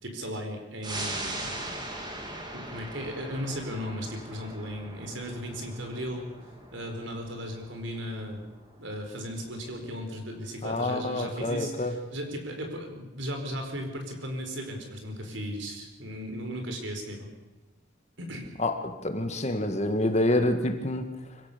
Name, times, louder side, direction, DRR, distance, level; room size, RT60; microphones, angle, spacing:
voice 1, 0.0-1.6 2.5-6.3 6.7-8.4 8.8-17.3 18.2-18.5, equal, 70° right, 4 dB, 4.6 m, -36 dB
sound 1, 0.8-11.8 12.2-12.3, right 1 dB, 20° right, 2.7 m, -41 dB
voice 2, 10.6-11.9 18.6-21.4, left 1 dB, 35° left, 6 dB, 1.9 m, -27 dB
25.5 x 16.5 x 6.9 m, 1.1 s
head